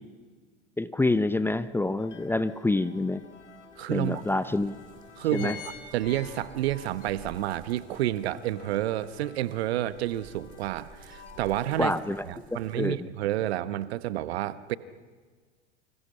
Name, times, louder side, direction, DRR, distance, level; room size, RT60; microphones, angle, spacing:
voice 1, 0.8-3.2 3.9-4.7 5.3-5.6 11.8-13.1, left 2 dB, 5° left, 14 dB, 0.6 m, -27 dB
sound 1, 1.0-1.1 1.6-2.8 3.4-3.5 3.8-3.9 4.5-4.7 5.0-6.8 7.2-7.3, left 9 dB, 45° left, 2.7 m, -44 dB
sound 2, 2.0-12.2, left 5 dB, 85° left, 1.9 m, -52 dB
voice 2, 3.8-4.2 5.2-5.6 5.9-11.9 12.2-14.8, right 13 dB, 60° right, 15 dB, 1.1 m, -30 dB
sound 3, 4.0-12.9, right 4 dB, 25° right, 4.0 m, -53 dB
29.0 x 25.5 x 5.8 m, 1.5 s
figure-of-eight pair, 85°, 35 cm